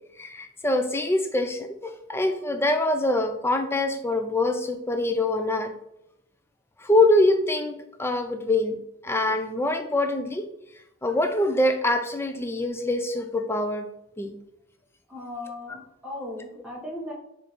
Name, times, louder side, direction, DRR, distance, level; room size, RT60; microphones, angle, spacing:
voice 1, 0.2-5.7 6.8-8.8 9.0-10.5 11.0-13.9 14.2-14.3, left 1 dB, 10° left, 7 dB, 0.4 m, -24 dB
voice 2, 15.1-17.1, left 1 dB, 5° right, -4 dB, 1.2 m, -37 dB
4.6 x 2.6 x 4.5 m, 0.83 s
head